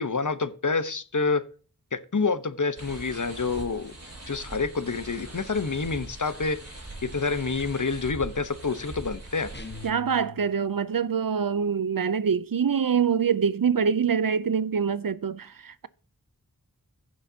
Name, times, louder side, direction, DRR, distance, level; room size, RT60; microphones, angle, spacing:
voice 1, 0.0-1.4 1.9-4.0 4.3-6.6 7.0-9.5, left 4 dB, 55° left, 1.0 m, -27 dB
sound 1, 2.8-9.9, right 1 dB, 40° right, 4.3 m, -42 dB
sound 2, 9.5-10.9, left 3 dB, 30° left, 1.4 m, -43 dB
voice 2, 9.8-15.9, right 6 dB, 65° right, 0.6 m, -25 dB
16.0 x 6.5 x 2.8 m
wide cardioid pair, 40°, 37 cm